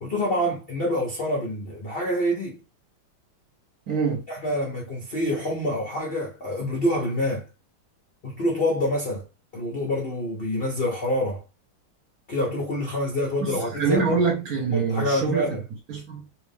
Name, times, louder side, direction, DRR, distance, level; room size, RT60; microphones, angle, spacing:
voice 1, 0.0-2.6 4.3-7.4 8.2-9.2 9.5-11.4 12.3-14.1 14.7-15.6, left 1 dB, 75° left, 0.5 m, -26 dB
voice 2, 3.9-4.2 13.4-15.6 15.9-16.2, right 5 dB, 55° right, 1.1 m, -25 dB
3.2 x 2.5 x 3.4 m
omnidirectional pair, 2.3 m